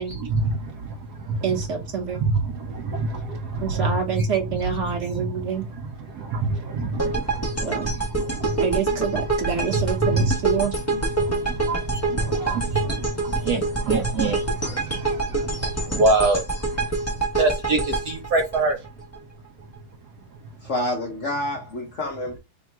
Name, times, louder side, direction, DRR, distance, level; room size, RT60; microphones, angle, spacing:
voice 1, 0.1-1.4 2.2-2.3 2.6-3.9 6.1-8.6 10.1-10.3 11.2-11.7 12.1-16.9 17.4-18.8, right 3 dB, 75° right, 0.9 m, -26 dB
voice 2, 1.4-2.2 3.6-5.7 7.6-7.9 8.6-10.7 11.7-11.8 12.4-12.9 14.7-15.6, right 6 dB, 45° right, 1.1 m, -28 dB
sound 1, 7.0-19.2, right 2 dB, 20° left, 0.3 m, -26 dB
voice 3, 20.6-22.4, left 1 dB, 60° left, 0.7 m, -28 dB
3.6 x 2.3 x 4.1 m
omnidirectional pair, 2.4 m